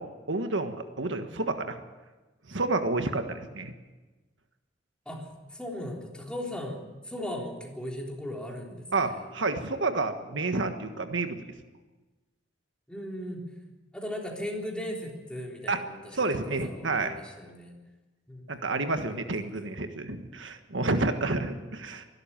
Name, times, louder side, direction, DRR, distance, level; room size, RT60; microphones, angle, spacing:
voice 1, 0.0-1.8 2.5-3.7 8.9-11.4 15.7-15.8 16.2-17.1 18.5-22.0, right 3 dB, 80° right, 7 dB, 1.5 m, -30 dB
voice 2, 5.1-9.2 12.9-13.5 13.9-16.2 16.5-17.7 18.3-18.6 21.1-21.7, left 1 dB, 5° left, -1 dB, 3.7 m, -38 dB
24.5 x 12.5 x 9.0 m, 1.2 s
head